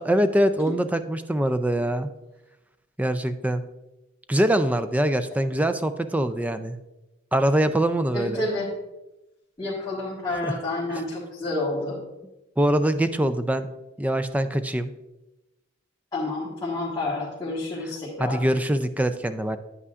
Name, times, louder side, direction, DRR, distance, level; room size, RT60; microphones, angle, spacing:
voice 1, 0.0-2.1 3.0-3.6 4.3-6.8 7.3-8.4 10.4-10.6 12.6-13.7 14.0-14.9 18.2-19.6, right 1 dB, 10° right, 11 dB, 0.3 m, -23 dB
voice 2, 8.1-8.7 9.6-12.0 16.1-18.4, left 2 dB, 20° left, -8 dB, 1.5 m, -29 dB
9.6 x 8.2 x 2.4 m, 0.99 s
head